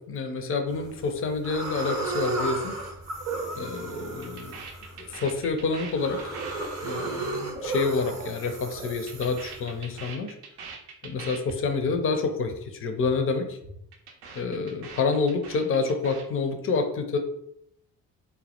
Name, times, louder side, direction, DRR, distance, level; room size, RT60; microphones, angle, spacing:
voice 1, 0.1-2.8 3.5-4.6 5.0-6.4 6.8-10.3 11.0-13.6 14.3-17.2, left 4 dB, 30° left, 6 dB, 0.4 m, -28 dB
sound 1, 0.7-1.1 1.4-10.1, right 2 dB, 35° right, 0.7 m, -34 dB
sound 2, 3.3-3.5 3.8-8.3 8.6-11.6 11.8-12.0 12.3-12.6 12.9-13.2 13.5-16.2, right 4 dB, 75° right, 0.6 m, -42 dB
2.1 x 2.0 x 2.8 m, 0.75 s
figure-of-eight pair, 45°, 47 cm